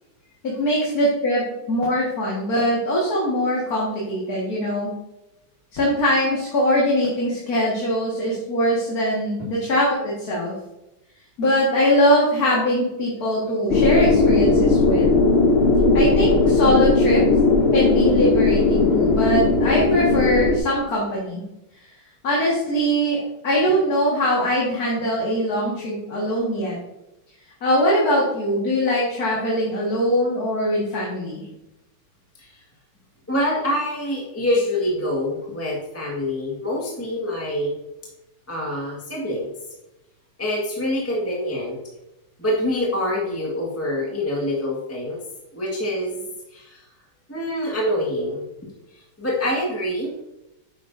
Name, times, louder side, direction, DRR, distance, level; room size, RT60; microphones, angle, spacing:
voice 1, 0.4-4.9 5.7-10.5 11.4-15.1 15.9-17.2 17.7-21.4 22.2-26.8 27.6-31.4, equal, 45° left, -5 dB, 2.1 m, -22 dB
sound 1, 13.7-20.6, left 3 dB, 85° left, 0.5 m, -17 dB
voice 2, 33.3-37.7 38.5-39.5 40.4-41.8 42.4-45.2 45.5-46.2 46.5-46.9 47.3-48.4 48.9-50.1, left 1 dB, 10° left, -4 dB, 1.3 m, -25 dB
9.8 x 8.2 x 2.6 m, 0.94 s
omnidirectional pair, 2.3 m